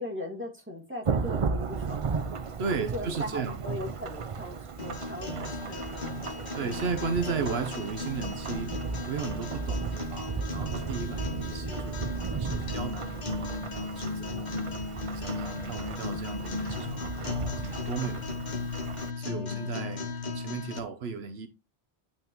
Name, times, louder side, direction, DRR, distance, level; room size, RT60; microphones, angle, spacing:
voice 1, 0.0-2.3 2.8-6.9 19.3-19.8, left 1 dB, 10° right, 2.2 m, -40 dB
Thunderstorm / Rain, 1.1-19.1, right 5 dB, 40° right, 0.5 m, -35 dB
voice 2, 2.6-3.6 6.5-8.8 9.1-13.1 13.7-14.5 15.1-18.4 19.2-21.5, right 5 dB, 75° right, 1.1 m, -35 dB
sound 1, 4.8-20.8, left 3 dB, 45° left, 1.2 m, -36 dB
9.1 x 5.9 x 3.0 m
omnidirectional pair, 1.1 m